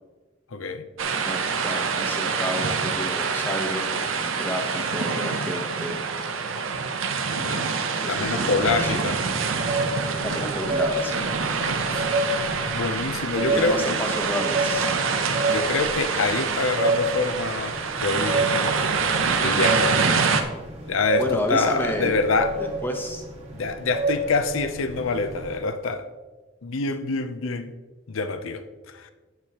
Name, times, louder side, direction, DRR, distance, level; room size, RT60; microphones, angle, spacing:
voice 1, 0.5-0.8 7.3-7.6 8.1-9.2 11.6-12.0 12.7-13.8 15.5-18.5 19.4-19.9 20.9-21.2 21.5-22.5 23.5-26.0 26.6-27.7 28.1-29.1, left 3 dB, 80° left, 9 dB, 0.7 m, -26 dB
sound 1, 1.0-20.4, right 5 dB, 85° right, 0.8 m, -26 dB
voice 2, 1.1-6.1 8.0-9.1 10.2-11.2 13.5-14.9 21.2-22.1 22.6-23.2, equal, 10° left, 2 dB, 1.0 m, -31 dB
sound 2, 8.1-25.6, right 2 dB, 30° right, 1.7 m, -30 dB
9.3 x 8.2 x 3.0 m, 1.3 s
head